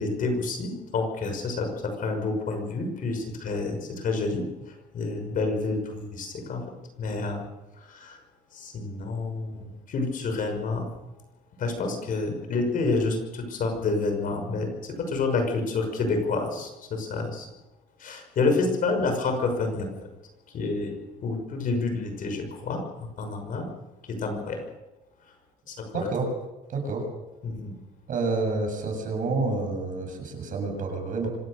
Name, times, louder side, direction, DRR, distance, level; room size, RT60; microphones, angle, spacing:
voice 1, 0.0-6.6 7.0-7.5 7.7-8.2 8.5-10.9 11.6-17.5 18.0-19.9 20.5-20.9 21.2-22.8 23.2-23.7 24.1-24.7 25.7-26.1 27.4-27.8, left 3 dB, 55° left, 5 dB, 6.0 m, -29 dB
voice 2, 25.9-26.3 26.7-27.0 28.1-31.3, right 3 dB, 50° right, 3 dB, 7.6 m, -28 dB
25.5 x 17.0 x 6.7 m, 1.0 s
cardioid pair, 110°, 17 cm